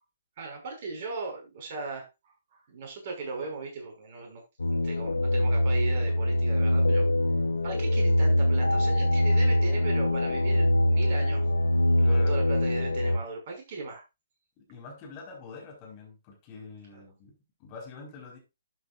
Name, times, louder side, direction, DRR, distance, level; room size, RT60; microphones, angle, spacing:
voice 1, 0.4-2.1 2.5-4.4 4.8-7.1 7.6-11.5 12.0-14.0 16.9-17.0, right 3 dB, 40° right, 1 dB, 6.1 m, -38 dB
sound 1, 4.6-13.2, left 1 dB, 70° left, 1.2 m, -23 dB
voice 2, 11.9-12.4 14.6-18.4, left 5 dB, 30° left, 0 dB, 4.6 m, -45 dB
12.0 x 9.4 x 2.5 m, 0.25 s
figure-of-eight pair, 125°, 0 cm